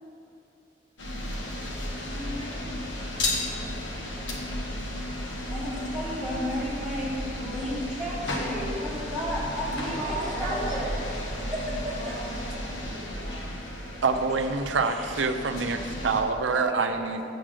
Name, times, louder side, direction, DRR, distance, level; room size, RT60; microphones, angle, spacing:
sound 1, 1.0-16.2, left 1 dB, 85° left, 1.3 m, -33 dB
voice 1, 2.0-2.9 9.7-10.6 11.9-13.5 16.5-17.2, right 1 dB, 55° left, -6 dB, 2.2 m, -38 dB
voice 2, 5.5-12.2 12.8-13.1 14.8-15.1, equal, ahead, -8 dB, 2.3 m, -33 dB
voice 3, 14.0-17.2, right 4 dB, 85° right, 7 dB, 0.6 m, -26 dB
7.5 x 6.9 x 6.4 m, 2.7 s
head